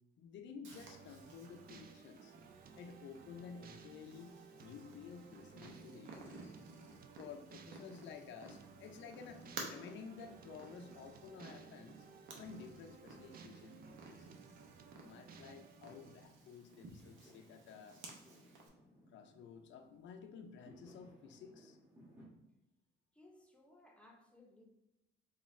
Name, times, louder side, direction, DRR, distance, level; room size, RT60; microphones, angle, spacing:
voice 1, 0.2-2.3 2.8-6.6 7.2-12.1 12.4-14.4 15.0-18.0 19.1-21.8, left 6 dB, 70° left, 5 dB, 0.4 m, -53 dB
Purr, 0.6-18.7, right 3 dB, 75° right, 0.8 m, -55 dB
sound 1, 0.7-16.3, right 6 dB, 50° right, 0.4 m, -58 dB
Fireworks, 14.2-22.3, equal, 10° right, 1.1 m, -66 dB
voice 2, 23.1-24.6, left 1 dB, 5° left, 0 dB, 0.8 m, -62 dB
3.1 x 2.4 x 4.1 m, 0.91 s
cardioid pair, 90°, 20 cm